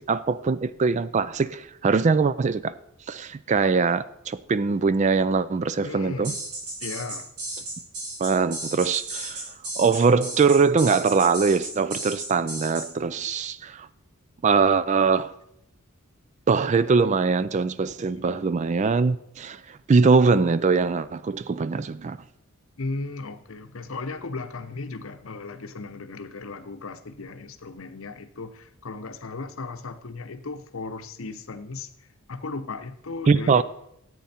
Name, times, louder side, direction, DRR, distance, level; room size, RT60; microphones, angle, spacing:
voice 1, 0.0-2.8 3.1-6.3 8.2-9.5 9.8-13.9 14.4-15.4 16.5-22.2 33.3-33.6, right 4 dB, 30° right, 0.3 m, -22 dB
voice 2, 5.8-6.4 6.8-7.3 18.1-18.4 22.8-33.6, left 3 dB, 65° left, 0.8 m, -36 dB
sound 1, 6.2-12.9, right 2 dB, 85° right, 3.2 m, -34 dB
14.0 x 8.4 x 4.3 m
head